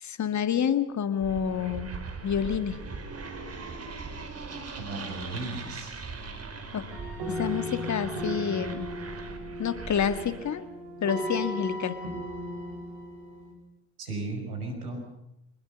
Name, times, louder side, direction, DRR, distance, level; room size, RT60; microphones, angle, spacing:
voice 1, 0.0-1.9 2.2-2.8 6.7-6.8 7.3-8.9 9.6-10.7 11.0-12.0, left 8 dB, 40° left, 11 dB, 1.9 m, -28 dB
sound 1, 1.2-10.6, right 4 dB, 35° right, 4.8 m, -40 dB
voice 2, 4.8-5.9 14.0-15.2, right 2 dB, 85° right, 4 dB, 6.1 m, -35 dB
sound 2, 6.9-13.5, equal, 60° right, 7.2 m, -36 dB
25.0 x 20.5 x 6.6 m, 0.84 s
hypercardioid pair, 60°, 45 cm